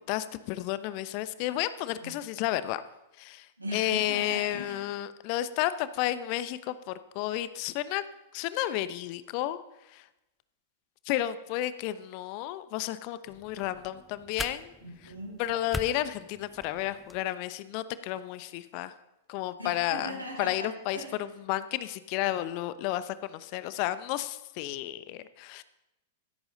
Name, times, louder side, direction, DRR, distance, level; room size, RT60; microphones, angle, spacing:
voice 1, 0.0-2.8 3.2-3.5 3.7-8.0 8.3-9.6 9.9-10.0 11.1-14.7 15.4-18.9 19.3-20.1 20.4-21.0 21.5-25.6, left 14 dB, 45° left, 14 dB, 0.8 m, -32 dB
voice 2, 3.6-4.9 14.8-15.4 19.6-21.2, equal, 90° right, -3 dB, 6.8 m, -39 dB
sound 1, 13.3-17.2, left 1 dB, 5° left, 0.7 m, -42 dB
16.0 x 14.0 x 3.9 m, 0.93 s
figure-of-eight pair, 95°, 0 cm